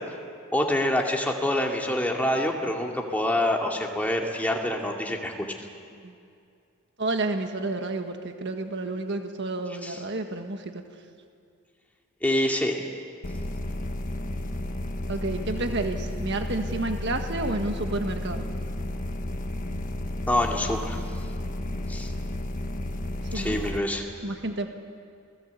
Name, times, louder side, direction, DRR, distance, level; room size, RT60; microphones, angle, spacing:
voice 1, 0.5-5.5 9.8-10.0 12.2-12.9 20.3-21.0 21.9-22.1 23.3-24.1, left 1 dB, 5° left, 0 dB, 2.3 m, -26 dB
voice 2, 7.0-10.7 15.1-18.5 23.3-23.6 24.2-24.7, right 2 dB, 55° right, 5 dB, 1.6 m, -30 dB
sound 1, 13.2-23.8, left 1 dB, 40° left, 1.3 m, -32 dB
28.5 x 19.5 x 8.3 m, 2.4 s
head